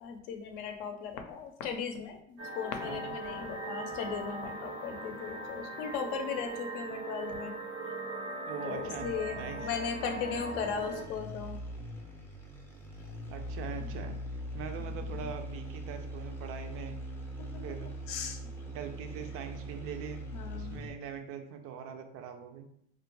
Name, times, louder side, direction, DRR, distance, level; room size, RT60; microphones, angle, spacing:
voice 1, 0.0-7.5 8.6-11.6 13.7-13.9 14.8-15.3 18.1-18.4 20.3-20.9, left 6 dB, 65° left, 5 dB, 0.6 m, -37 dB
sound 1, 2.4-11.0, right 2 dB, 80° right, 0.9 m, -40 dB
voice 2, 2.8-3.2 8.5-9.7 13.3-14.1 14.5-17.0 17.6-17.9 18.7-20.2 20.5-22.7, right 7 dB, 50° right, 6 dB, 0.4 m, -42 dB
sound 2, 8.9-21.1, equal, 10° left, 0.4 m, -42 dB
2.4 x 2.1 x 2.9 m, 0.71 s
supercardioid pair, 100°, 31 cm